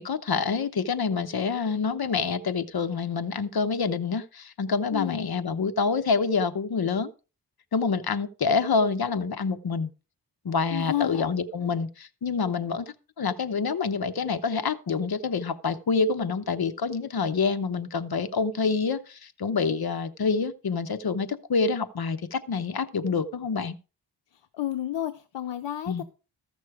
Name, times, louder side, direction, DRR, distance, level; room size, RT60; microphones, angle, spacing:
voice 1, 0.0-7.1 7.7-9.9 10.4-23.7 25.9-26.0, left 5 dB, 60° left, 0.9 m, -27 dB
voice 2, 4.9-5.3 10.7-11.3 24.5-26.0, left 12 dB, 85° left, 0.6 m, -31 dB
14.0 x 6.3 x 4.8 m
wide cardioid pair, 85°, 42 cm